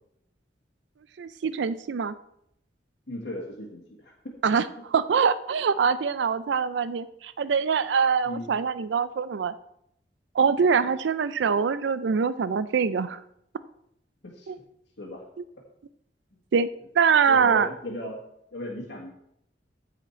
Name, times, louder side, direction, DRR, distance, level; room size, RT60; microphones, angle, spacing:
voice 1, 1.2-2.2 4.4-9.5 10.3-13.2 14.5-14.6 16.5-16.7 17.0-17.7, right 6 dB, 80° right, 14 dB, 0.4 m, -24 dB
voice 2, 3.1-4.1 8.2-8.6 14.2-14.5 15.0-15.2 17.3-18.2 18.5-19.1, left 1 dB, 75° left, -4 dB, 1.7 m, -36 dB
14.5 x 4.9 x 4.4 m, 0.75 s
head